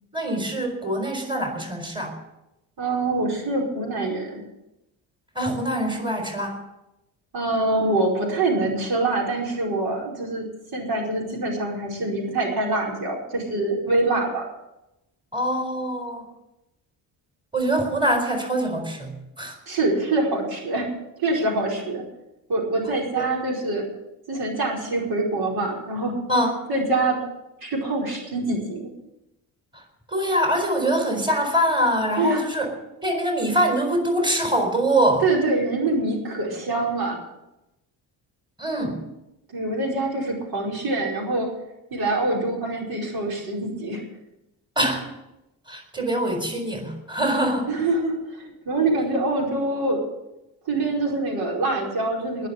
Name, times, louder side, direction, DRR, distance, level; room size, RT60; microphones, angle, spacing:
voice 1, 0.1-2.1 5.3-6.6 15.3-16.3 17.5-19.6 23.2-23.3 26.3-26.5 29.7-29.8 30.1-32.7 33.0-35.2 38.6-39.0 44.8-45.1 45.7-47.7, right 1 dB, 10° right, 2 dB, 4.3 m, -24 dB
voice 2, 2.8-4.4 7.3-10.5 10.7-14.4 19.7-20.9 21.2-22.0 22.5-23.9 24.3-26.2 26.7-27.2 27.6-28.9 32.2-32.4 35.2-37.2 39.5-41.5 41.9-44.0 47.7-50.0 50.7-52.5, right 2 dB, 65° right, -1 dB, 5.0 m, -25 dB
20.0 x 6.7 x 8.3 m, 0.93 s
cardioid pair, 100°, 40 cm